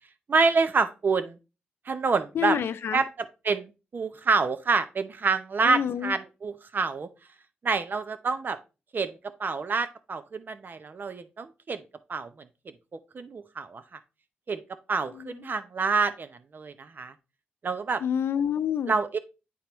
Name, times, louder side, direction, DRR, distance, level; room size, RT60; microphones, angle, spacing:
voice 1, 0.3-1.4 1.9-2.6 2.9-7.1 7.6-8.6 8.9-11.8 12.1-12.5 13.1-14.0 14.5-14.6 14.9-17.1 17.6-18.0 18.9-19.2, right 4 dB, 55° right, 0.7 m, -27 dB
voice 2, 2.3-3.0 5.6-6.1 15.2-15.3 18.0-18.9, left 8 dB, 80° left, 0.5 m, -28 dB
8.4 x 4.4 x 3.1 m
cardioid pair, 60°, 4 cm